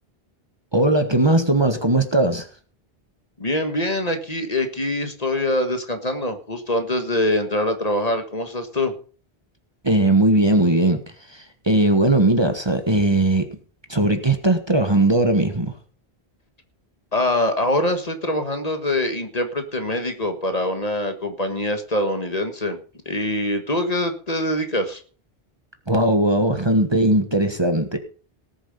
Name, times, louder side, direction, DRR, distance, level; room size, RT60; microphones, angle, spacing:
voice 1, 0.7-2.5 9.8-11.0 11.3-13.5 13.9-15.7 25.9-28.0, right 1 dB, 25° right, 7 dB, 1.4 m, -19 dB
voice 2, 3.4-8.9 17.1-22.8 23.0-25.0, left 1 dB, 40° left, 7 dB, 1.7 m, -24 dB
18.5 x 7.2 x 5.4 m, 0.40 s
omnidirectional pair, 1.0 m